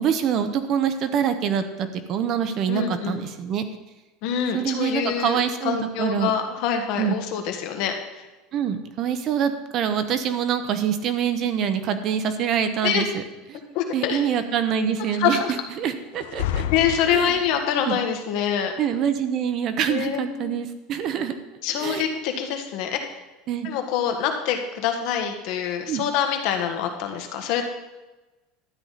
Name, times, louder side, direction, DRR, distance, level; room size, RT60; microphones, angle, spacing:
voice 1, 0.0-3.6 4.5-6.3 7.0-7.2 8.5-13.2 13.5-13.6 13.9-16.6 17.1-17.4 17.8-18.0 18.8-21.4 21.8-22.0 23.5-23.7 25.9-26.0, right 8 dB, 40° right, 9 dB, 0.9 m, -25 dB
voice 2, 2.7-3.2 4.2-8.3 12.8-13.0 13.7-14.2 15.1-15.5 16.7-18.7 19.9-20.6 21.6-23.0 23.6-27.6, left 8 dB, 55° left, 4 dB, 1.5 m, -25 dB
sound 1, 16.1-17.8, left 11 dB, 80° left, 0.6 m, -30 dB
12.5 x 9.8 x 4.1 m, 1.1 s
cardioid pair, 160°, 0 cm